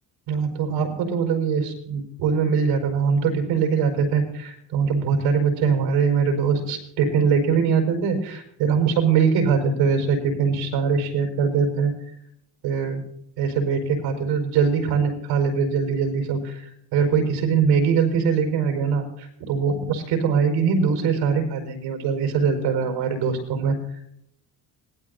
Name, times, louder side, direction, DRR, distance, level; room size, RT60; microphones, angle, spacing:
voice 1, 0.3-11.9 12.6-13.0 13.4-24.0, right 6 dB, 90° right, 4 dB, 5.1 m, -22 dB
25.5 x 19.5 x 2.7 m, 0.72 s
cardioid pair, 155°, 41 cm